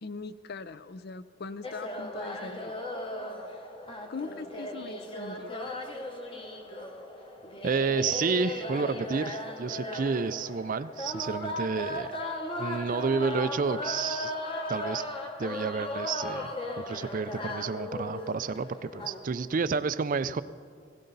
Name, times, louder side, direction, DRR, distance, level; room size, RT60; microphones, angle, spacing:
voice 1, 0.0-2.7 4.1-5.6, left 4 dB, 45° left, 14 dB, 0.5 m, -41 dB
sound 1, 1.6-19.2, left 1 dB, 25° left, 1.0 m, -37 dB
voice 2, 7.6-12.1 12.6-14.3 14.7-15.1 15.4-20.4, right 4 dB, 40° right, 14 dB, 0.3 m, -30 dB
18.0 x 16.5 x 4.0 m, 2.2 s
head